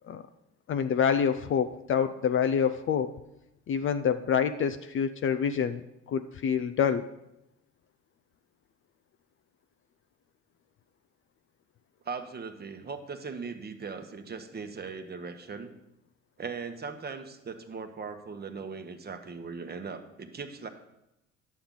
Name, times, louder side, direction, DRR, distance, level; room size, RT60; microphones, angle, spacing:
voice 1, 0.7-3.1 3.7-5.8 6.1-7.1, left 7 dB, 35° left, 9 dB, 0.5 m, -27 dB
voice 2, 12.0-15.7 16.4-20.7, right 5 dB, 30° right, 7 dB, 1.1 m, -39 dB
10.5 x 6.9 x 3.8 m, 0.87 s
hypercardioid pair, 65°, 34 cm